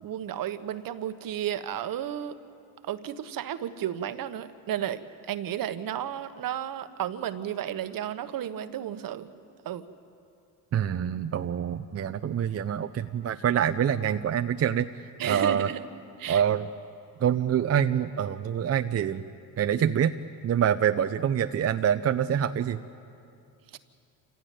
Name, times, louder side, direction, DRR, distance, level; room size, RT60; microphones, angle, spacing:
voice 1, 0.0-2.4 2.8-9.3 9.6-9.9 15.2-15.8 16.2-16.4 23.7-23.8, right 10 dB, 55° right, 11 dB, 1.3 m, -33 dB
voice 2, 10.7-15.7 16.3-16.7 17.2-19.2 19.6-20.1 20.4-22.8, right 9 dB, 35° right, 9 dB, 0.7 m, -26 dB
27.5 x 16.0 x 9.3 m, 2.5 s
supercardioid pair, 90°, 40 cm